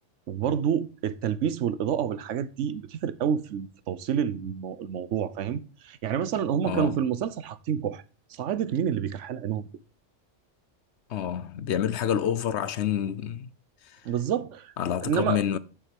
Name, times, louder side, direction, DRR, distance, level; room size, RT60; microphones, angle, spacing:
voice 1, 0.3-8.0 8.3-9.7 14.0-14.7 15.0-15.4, right 8 dB, 85° right, 1.1 m, -28 dB
voice 2, 6.6-7.0 11.1-13.5 14.8-15.6, left 9 dB, 70° left, 0.9 m, -28 dB
7.4 x 7.3 x 5.2 m
omnidirectional pair, 1.2 m